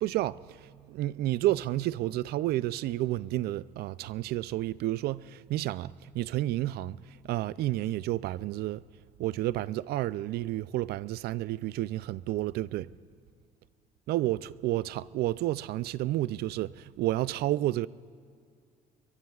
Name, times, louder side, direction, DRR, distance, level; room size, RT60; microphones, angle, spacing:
voice 1, 0.0-8.8 9.2-12.9 14.1-17.9, right 15 dB, 70° right, 0.4 m, -31 dB
24.5 x 22.5 x 2.4 m
cardioid pair, 110°, 17 cm